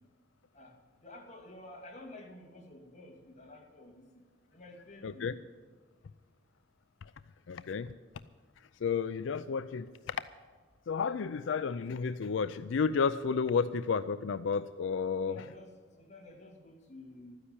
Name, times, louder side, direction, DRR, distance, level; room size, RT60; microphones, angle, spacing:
voice 1, 1.0-4.1 4.5-5.3 15.2-17.4, left 1 dB, 40° left, 1 dB, 2.5 m, -51 dB
voice 2, 5.0-5.3 7.5-7.9 8.8-10.2 10.9-15.4, left 5 dB, 80° left, 13 dB, 0.4 m, -32 dB
13.0 x 9.9 x 8.7 m, 1.5 s
head